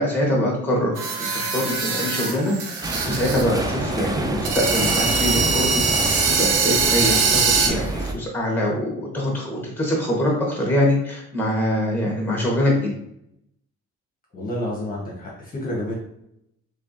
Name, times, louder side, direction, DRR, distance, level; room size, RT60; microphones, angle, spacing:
voice 1, 0.0-12.9, left 1 dB, 5° left, -2 dB, 1.3 m, -24 dB
sound 1, 1.0-3.4 3.7-3.8 4.4-7.7, right 5 dB, 85° right, 0.7 m, -22 dB
sound 2, 2.8-8.1, right 1 dB, 15° right, 0.5 m, -27 dB
voice 2, 14.3-16.0, left 1 dB, 30° left, -4 dB, 1.1 m, -29 dB
3.3 x 3.3 x 2.6 m, 0.77 s
cardioid pair, 90°, 30 cm